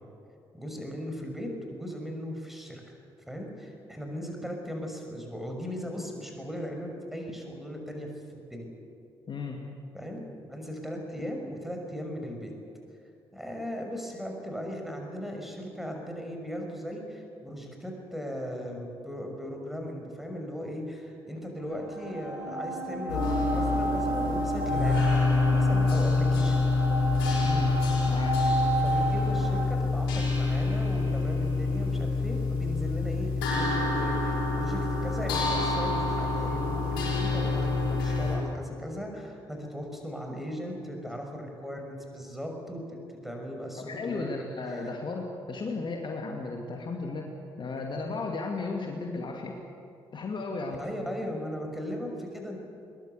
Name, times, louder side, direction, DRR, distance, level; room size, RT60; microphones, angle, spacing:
voice 1, 0.5-2.8 3.3-8.7 9.9-12.5 13.3-26.6 28.8-44.9 50.8-52.6, equal, ahead, 2 dB, 6.1 m, -38 dB
voice 2, 9.3-9.6 27.4-27.7 28.1-28.4 43.8-47.3 47.6-49.6 50.1-50.8, left 3 dB, 40° left, 2 dB, 2.4 m, -34 dB
sound 1, 21.6-29.7, right 2 dB, 90° left, 4.7 m, -33 dB
sound 2, 23.1-38.4, left 3 dB, 70° left, 5.7 m, -26 dB
22.0 x 21.0 x 8.3 m, 2.8 s
figure-of-eight pair, 45°, 12 cm